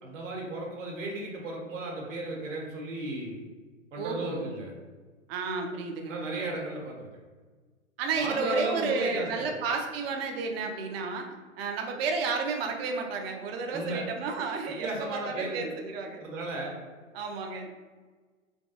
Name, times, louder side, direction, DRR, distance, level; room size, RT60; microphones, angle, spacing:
voice 1, 0.0-3.4 3.9-4.7 6.1-7.1 8.1-9.6 13.7-14.0 14.8-15.7 16.2-16.7, right 2 dB, 70° right, -1 dB, 1.2 m, -35 dB
voice 2, 4.0-4.5 5.3-6.4 8.0-11.3 11.6-16.2 17.1-17.7, right 4 dB, 50° right, 2 dB, 0.6 m, -32 dB
3.3 x 2.3 x 2.7 m, 1.4 s
hypercardioid pair, 120°, 39 cm